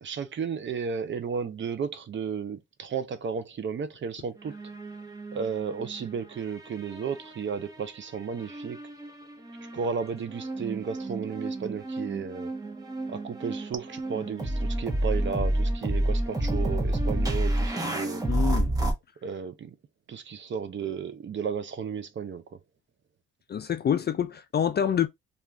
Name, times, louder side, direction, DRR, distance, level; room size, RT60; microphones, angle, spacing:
voice 1, 0.0-4.6 5.3-8.8 9.7-12.5 13.1-18.3 19.2-19.8 20.1-22.6, right 6 dB, 40° right, 0.6 m, -33 dB
sound 1, 4.5-6.0 6.4-7.7 8.5-18.9, right 1 dB, 10° right, 0.8 m, -30 dB
voice 2, 18.3-18.7 23.5-25.1, left 8 dB, 35° left, 0.4 m, -26 dB
2.4 x 2.3 x 3.2 m
cardioid pair, 90°, 30 cm